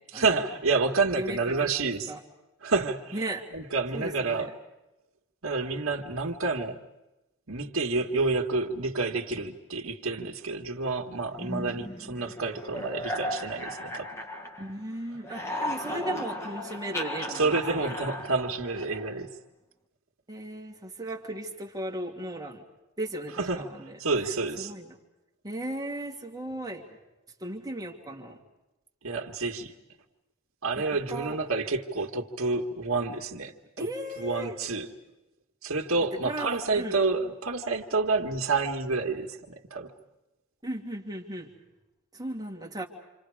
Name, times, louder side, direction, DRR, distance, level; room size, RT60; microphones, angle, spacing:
voice 1, 0.1-2.1 2.6-3.2 3.5-4.5 5.4-6.8 7.5-14.2 17.3-19.3 23.4-23.7 24.0-24.7 29.0-29.7 30.6-33.9 34.2-34.9 35.6-39.9, right 3 dB, 70° right, 3 dB, 2.0 m, -29 dB
voice 2, 1.1-2.2 3.1-3.5 3.9-4.5 14.6-17.9 20.3-22.6 23.0-24.0 24.6-25.0 25.4-26.8 27.4-28.4 30.8-31.4 33.8-34.6 36.2-36.9 40.6-41.5 42.1-42.8, right 1 dB, 20° right, 0 dB, 2.8 m, -36 dB
sound 1, 11.4-14.9 15.1-19.2, left 1 dB, 15° left, 1.9 m, -36 dB
28.5 x 28.0 x 5.0 m, 0.99 s
head